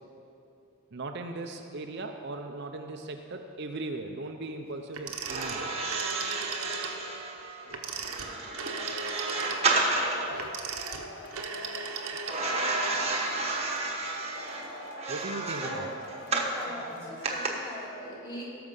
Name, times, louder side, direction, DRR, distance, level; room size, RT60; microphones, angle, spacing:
voice 1, 0.9-5.7 15.1-15.9, right 2 dB, 50° right, 4 dB, 0.6 m, -38 dB
Telephone, 4.9-7.0 7.7-12.7, right 5 dB, 75° right, 0.9 m, -37 dB
sound 1, 5.2-10.3 12.3-16.6 17.2-17.5, right 3 dB, 30° right, 1.1 m, -31 dB
Male speech man speaking / Shout / Clapping, 9.1-17.5, left 1 dB, 50° left, 1.1 m, -45 dB
voice 2, 16.3-18.4, equal, 20° left, -8 dB, 3.1 m, -41 dB
17.5 x 6.9 x 5.4 m, 2.8 s
head